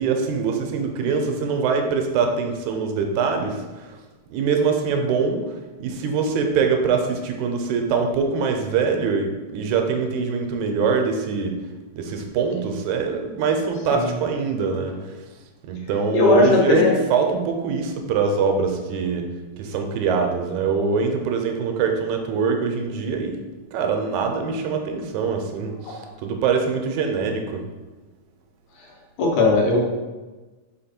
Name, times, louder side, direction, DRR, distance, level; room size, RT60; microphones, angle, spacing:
voice 1, 0.0-4.0 4.3-11.6 12.0-15.2 15.6-19.3 19.6-23.4 23.7-27.7, right 5 dB, 80° right, 4 dB, 2.1 m, -23 dB
voice 2, 16.1-17.0 29.2-29.8, left 3 dB, 80° left, -1 dB, 2.6 m, -17 dB
5.3 x 4.9 x 4.3 m, 1.2 s
omnidirectional pair, 3.6 m